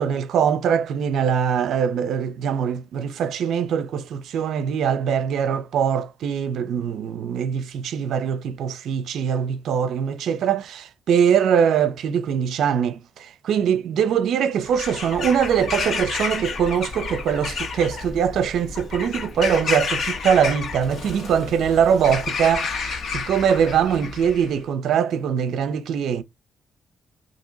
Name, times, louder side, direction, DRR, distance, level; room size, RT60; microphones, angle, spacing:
voice 1, 0.0-26.2, right 7 dB, 75° right, 0.6 m, -22 dB
Bird vocalization bird call bird song / Crow, 14.6-24.5, left 5 dB, 60° left, 1.3 m, -30 dB
2.9 x 2.6 x 3.8 m
cardioid pair, 90°, 0 cm